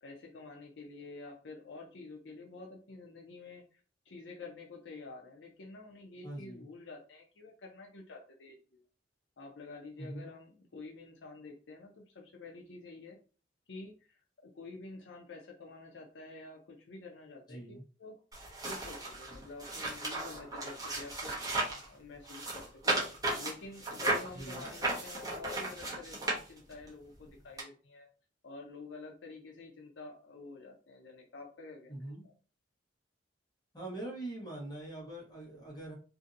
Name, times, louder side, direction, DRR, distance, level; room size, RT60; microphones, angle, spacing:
voice 1, 0.0-3.8 4.1-8.8 9.4-13.2 13.7-14.1 14.4-18.1 18.7-21.4 21.7-23.0 23.4-28.1 28.4-31.9, left 3 dB, 75° left, 0 dB, 0.5 m, -49 dB
voice 2, 6.2-6.6 10.0-10.3 17.5-17.8 24.3-24.7 31.9-32.3 33.7-35.9, right 1 dB, 25° left, -4 dB, 1.2 m, -43 dB
sound 1, 18.3-21.9 22.2-26.9 27.6-27.7, right 2 dB, 20° right, 0.8 m, -35 dB
2.7 x 2.5 x 2.5 m, 0.38 s
head